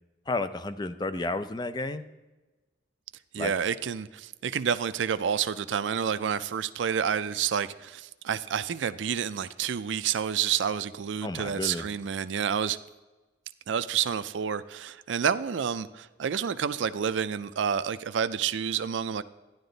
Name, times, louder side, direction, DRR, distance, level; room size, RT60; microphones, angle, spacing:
voice 1, 0.3-2.0 3.4-3.5 11.2-11.9, left 2 dB, 25° left, 11 dB, 0.5 m, -31 dB
voice 2, 3.3-12.8 13.7-19.2, right 7 dB, 85° right, 12 dB, 0.4 m, -29 dB
12.5 x 10.5 x 3.9 m, 1.1 s
head